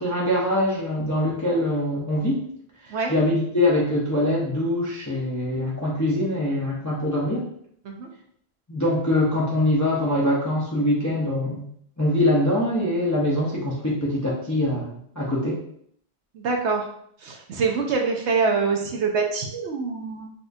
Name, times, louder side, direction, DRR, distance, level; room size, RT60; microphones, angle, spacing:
voice 1, 0.0-2.4 2.8-7.4 8.7-11.7 12.0-15.6, left 1 dB, 30° left, -5 dB, 0.3 m, -23 dB
voice 2, 16.3-16.9 17.2-20.3, right 4 dB, 70° right, 2 dB, 0.8 m, -25 dB
4.1 x 2.3 x 2.5 m, 0.67 s
omnidirectional pair, 1.3 m